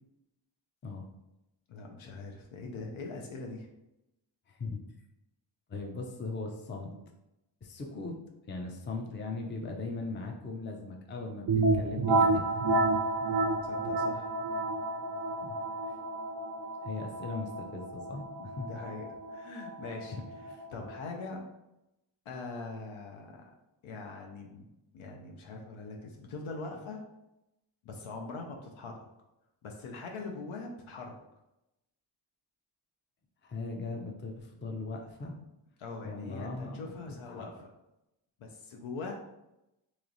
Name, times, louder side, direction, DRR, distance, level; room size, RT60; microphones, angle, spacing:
voice 1, 1.7-3.7 13.6-14.3 18.6-20.2 20.7-21.4 22.3-23.5 23.8-24.7 24.9-27.0 27.8-29.0 29.6-31.2 35.8-37.7 38.4-39.1, left 3 dB, 80° left, 1 dB, 0.7 m, -42 dB
voice 2, 4.5-4.8 5.7-7.0 7.6-8.2 8.5-11.5 11.7-12.4 15.4-15.6 15.9-16.0 16.8-18.7 20.5-20.6 33.4-35.3 36.0-37.5, left 3 dB, 25° left, 1 dB, 0.5 m, -39 dB
sound 1, 11.5-21.0, right 2 dB, 45° right, 0.5 m, -30 dB
3.1 x 3.0 x 3.8 m, 0.90 s
wide cardioid pair, 115°, 47 cm